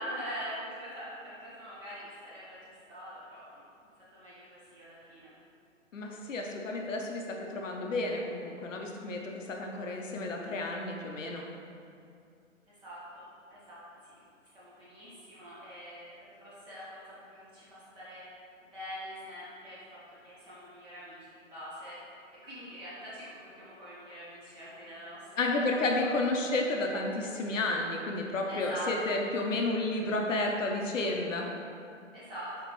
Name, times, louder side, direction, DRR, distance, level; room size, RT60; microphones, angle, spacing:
voice 1, 0.0-3.6 4.1-5.3 12.8-13.8 14.5-17.0 17.3-18.3 18.6-22.0 22.4-25.7 25.9-26.1 28.5-29.1 32.1-32.5, equal, 15° right, -11 dB, 1.3 m, -43 dB
voice 2, 5.9-11.4 25.4-31.5, left 2 dB, 75° left, 1 dB, 0.7 m, -31 dB
4.3 x 4.0 x 3.1 m, 2.4 s
figure-of-eight pair, 135°, 39 cm